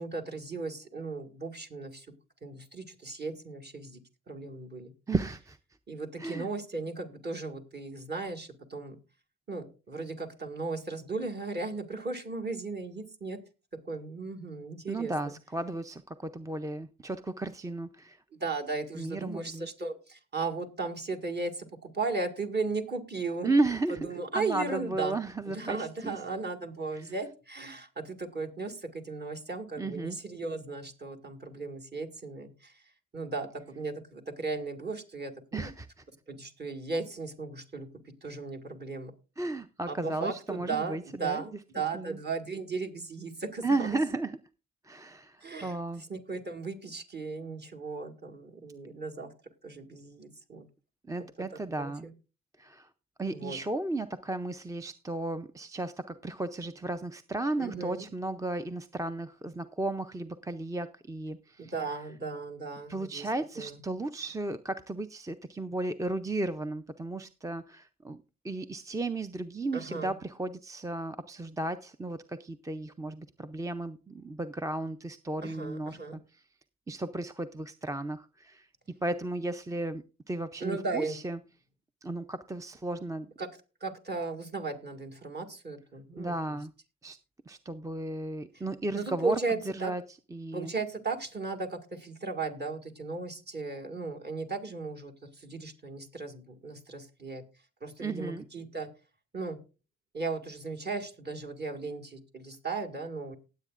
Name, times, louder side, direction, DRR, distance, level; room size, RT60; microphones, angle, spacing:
voice 1, 0.0-2.1 2.4-4.0 4.3-4.9 5.9-9.0 9.5-13.4 13.9-15.4 18.3-23.5 23.9-25.2 25.5-32.8 33.1-35.7 36.3-37.9 38.2-39.1 39.9-44.0 45.4-45.8 46.1-49.3 49.6-50.7 51.8-52.1 53.3-53.6 57.6-58.1 61.6-63.3 63.6-63.8 69.7-70.1 75.4-76.2 80.6-81.2 83.4-83.5 83.8-86.6 88.9-89.9 90.5-97.4 97.8-98.9 99.3-99.6 100.1-103.4, right 3 dB, 35° right, 4 dB, 2.0 m, -36 dB
voice 2, 5.1-5.6 6.2-6.5 14.9-18.2 19.0-19.7 23.4-24.1 24.4-26.2 27.0-27.1 29.8-30.2 35.5-35.9 39.4-41.4 41.9-42.2 43.6-44.4 44.8-46.0 51.1-52.1 52.6-52.9 53.2-61.7 62.9-76.4 76.9-78.7 79.0-81.4 82.0-83.3 86.2-86.7 87.0-87.2 87.5-90.0 90.3-90.7 98.0-98.4, right 2 dB, 10° right, 10 dB, 0.4 m, -34 dB
19.0 x 8.2 x 2.4 m, 0.31 s
cardioid pair, 115°, 30 cm